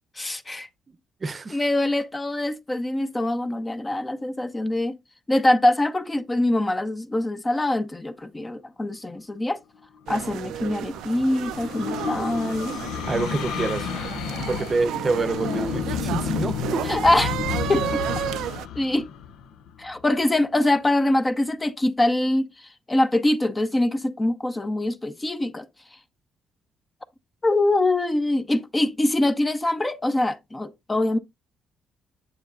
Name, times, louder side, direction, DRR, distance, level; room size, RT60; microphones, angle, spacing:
voice 1, 0.2-0.7 1.5-5.0 5.3-9.6 10.1-12.8 16.9-17.3 17.7-18.2 18.8-19.1 19.8-25.7 27.4-31.2, left 1 dB, 20° left, 0.7 m, -24 dB
voice 2, 0.9-1.6 13.1-14.2 14.5-17.0, right 3 dB, 35° right, 0.7 m, -27 dB
sound 1, 10.1-18.7, right 11 dB, 85° right, 0.4 m, -33 dB
sound 2, 10.4-20.0, left 8 dB, 85° left, 0.6 m, -31 dB
7.9 x 7.0 x 2.4 m
cardioid pair, 90°, 0 cm